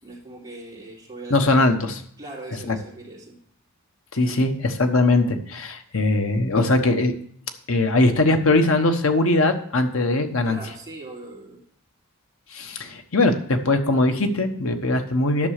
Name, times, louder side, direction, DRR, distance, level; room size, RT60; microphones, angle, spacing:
voice 1, 0.0-1.6 2.2-3.4 10.4-11.6, right 2 dB, 15° right, -6 dB, 3.5 m, -40 dB
voice 2, 1.3-2.0 2.7-2.8 4.1-7.1 7.7-10.6 12.5-15.5, left 2 dB, 65° left, 6 dB, 1.1 m, -20 dB
10.5 x 6.1 x 6.5 m, 0.63 s
head